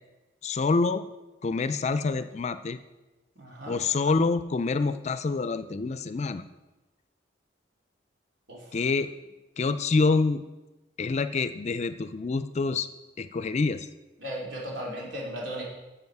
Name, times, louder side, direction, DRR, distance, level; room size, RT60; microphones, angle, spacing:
voice 1, 0.4-1.1 1.4-2.8 3.7-6.4 8.7-9.1 9.6-10.4 11.0-12.9 13.2-13.9, left 4 dB, 40° left, 12 dB, 0.4 m, -26 dB
voice 2, 3.3-3.8 8.5-8.6 14.2-15.6, equal, 85° right, -3 dB, 3.0 m, -36 dB
11.0 x 7.3 x 4.7 m, 1.1 s
head